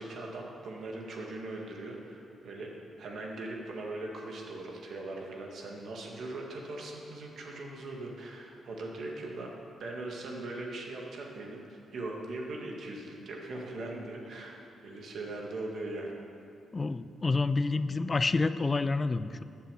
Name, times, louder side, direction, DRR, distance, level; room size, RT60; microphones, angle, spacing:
voice 1, 0.0-2.7 3.0-9.5 9.8-16.2, right 2 dB, 70° right, 0 dB, 1.7 m, -40 dB
voice 2, 16.7-19.4, left 3 dB, 35° left, 14 dB, 0.4 m, -28 dB
8.5 x 7.1 x 6.7 m, 2.5 s
supercardioid pair, 60°, 0 cm